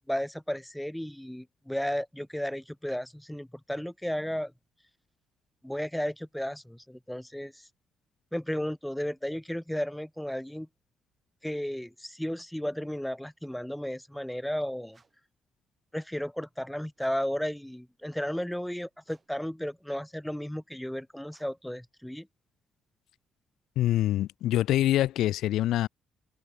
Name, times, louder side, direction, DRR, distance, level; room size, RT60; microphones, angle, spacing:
voice 1, 0.1-4.5 5.6-7.5 8.3-10.7 11.4-15.0 15.9-22.3, equal, 5° left, 0.6 m, -34 dB
sound 1, 14.9-15.4 16.9-17.4 19.0-19.5 21.3-21.8, right 4 dB, 30° right, 3.9 m, -66 dB
voice 2, 23.8-25.9, left 13 dB, 85° left, 0.4 m, -25 dB
open air
cardioid pair, 90°, 0 cm